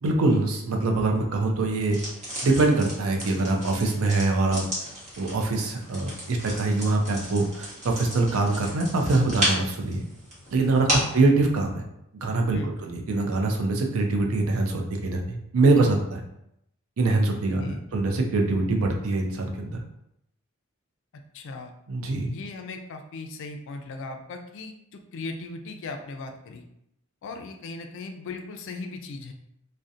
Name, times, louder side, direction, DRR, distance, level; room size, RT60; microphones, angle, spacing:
voice 1, 0.0-2.0 2.4-4.6 5.2-10.0 10.5-11.8 12.2-16.2 17.0-19.8 21.9-22.3, right 2 dB, 70° right, 2 dB, 0.4 m, -24 dB
sound 1, 1.8-11.2, equal, 35° right, 0.9 m, -33 dB
voice 2, 17.3-17.8 21.3-21.7 22.3-26.7 27.2-29.3, left 3 dB, 60° left, 4 dB, 0.3 m, -38 dB
2.6 x 2.1 x 2.4 m, 0.79 s
head